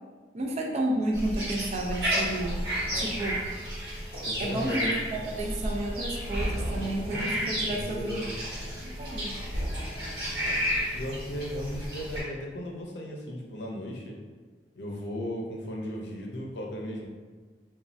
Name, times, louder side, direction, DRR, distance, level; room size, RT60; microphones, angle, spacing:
voice 1, 0.3-2.6 2.9-3.5 4.4-8.3 8.8-9.4, right 1 dB, 35° right, 1 dB, 0.4 m, -32 dB
sound 1, 1.1-12.2, equal, 60° right, 1.1 m, -32 dB
voice 2, 4.2-5.0 7.7-8.4 10.9-14.2 14.8-17.1, equal, 80° left, 0 dB, 0.5 m, -36 dB
3.0 x 2.3 x 2.5 m, 1.4 s
head